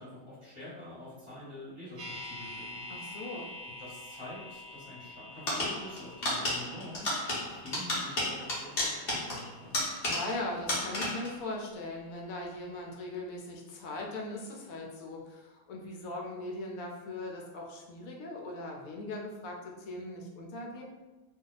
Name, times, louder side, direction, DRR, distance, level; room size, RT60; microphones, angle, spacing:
voice 1, 0.0-3.3 3.6-9.8, left 1 dB, 20° left, -10 dB, 1.3 m, -47 dB
sound 1, 2.0-12.0 12.3-12.4, left 1 dB, 60° right, 0.4 m, -48 dB
voice 2, 2.9-3.5 10.0-20.8, left 2 dB, 75° left, 0 dB, 1.0 m, -39 dB
sound 2, 5.5-10.4 10.7-11.4, left 1 dB, 45° left, 1.0 m, -33 dB
2.7 x 2.3 x 3.9 m, 1.2 s
omnidirectional pair, 1.5 m